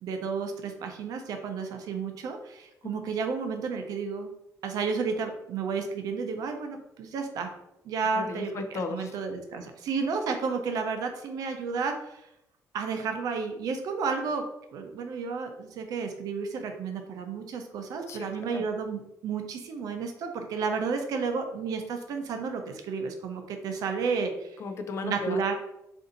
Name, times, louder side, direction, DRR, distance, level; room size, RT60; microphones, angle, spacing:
voice 1, 0.0-4.3 4.6-7.5 7.8-8.5 8.9-12.2 12.7-14.4 14.7-24.5 25.0-25.5, right 5 dB, 75° right, 5 dB, 0.5 m, -32 dB
voice 2, 8.1-9.1 18.1-18.6 24.6-25.5, left 4 dB, 45° left, 6 dB, 0.4 m, -36 dB
2.6 x 2.6 x 3.9 m, 0.84 s
cardioid pair, 135°, 6 cm